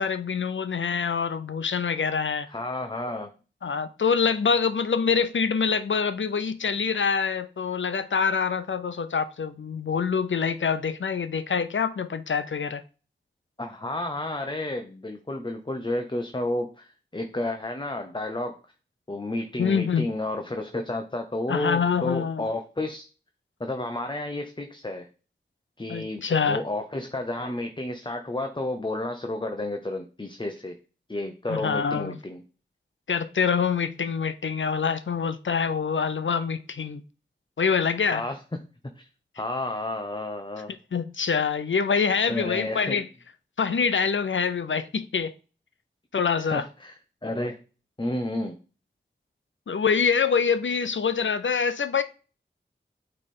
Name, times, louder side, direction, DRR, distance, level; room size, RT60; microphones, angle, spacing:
voice 1, 0.0-2.5 3.6-12.8 19.6-20.0 21.5-22.5 25.9-26.6 31.5-32.2 33.1-37.0 37.6-38.2 40.9-43.1 43.6-45.3 46.1-46.6 49.7-52.0, left 6 dB, 80° left, 0.6 m, -25 dB
voice 2, 2.5-3.3 13.6-18.6 19.1-23.1 23.6-25.1 25.8-30.7 31.1-32.4 38.1-38.4 39.0-39.1 39.4-40.7 42.3-43.0 46.4-46.9 47.2-47.6 48.0-48.6, left 1 dB, 25° left, 0.8 m, -31 dB
8.6 x 3.3 x 4.3 m
wide cardioid pair, 50°, 20 cm